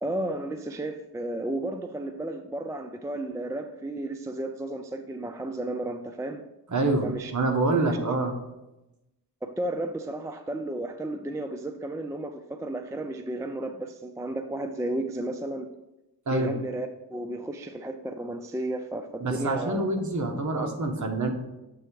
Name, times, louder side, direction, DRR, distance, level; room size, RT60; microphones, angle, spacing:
voice 1, 0.0-6.4 7.0-7.3 7.8-8.0 9.4-15.7 16.3-19.8 20.5-20.7, right 1 dB, 10° right, 7 dB, 0.3 m, -33 dB
voice 2, 6.7-8.4 16.3-16.5 19.2-21.3, right 2 dB, 45° right, 3 dB, 1.1 m, -26 dB
7.7 x 3.3 x 4.7 m, 0.95 s
wide cardioid pair, 90°, 40 cm